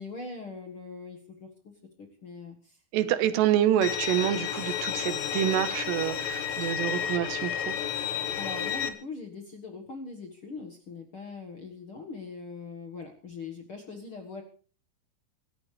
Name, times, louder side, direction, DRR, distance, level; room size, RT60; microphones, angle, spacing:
voice 1, 0.0-1.7 2.0-3.1 8.4-14.4, left 4 dB, 50° left, 3 dB, 1.6 m, -42 dB
voice 2, 2.9-7.8, right 11 dB, 90° right, 12 dB, 3.3 m, -27 dB
Bowed string instrument, 3.8-8.9, left 9 dB, 90° left, 3.6 m, -31 dB
sound 1, 3.9-8.7, right 4 dB, 50° right, 4.3 m, -52 dB
25.5 x 14.0 x 3.3 m, 0.39 s
omnidirectional pair, 4.8 m